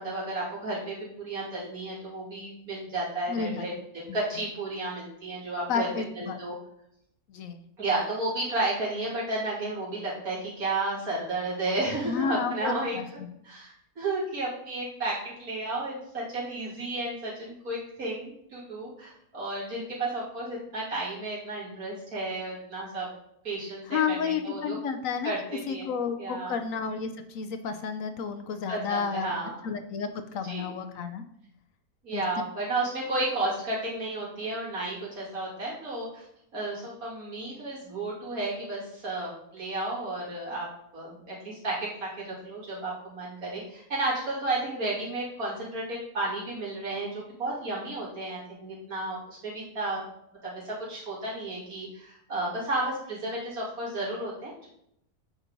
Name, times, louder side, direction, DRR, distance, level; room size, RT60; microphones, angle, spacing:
voice 1, 0.0-3.7 4.1-5.9 6.1-6.5 7.8-13.0 13.4-23.1 23.4-24.2 24.4-24.7 25.2-25.9 26.2-26.6 28.7-29.6 30.4-30.7 32.0-36.2 36.5-40.7 40.9-50.0 50.4-54.7, right 2 dB, 70° right, -7 dB, 3.2 m, -32 dB
voice 2, 3.3-3.7 4.1-4.2 5.7-6.4 7.3-7.6 12.1-13.3 23.9-25.3 25.7-29.4 29.6-31.2 32.1-32.2, left 6 dB, 70° left, 9 dB, 1.0 m, -31 dB
9.0 x 4.4 x 3.9 m, 0.74 s
omnidirectional pair, 1.6 m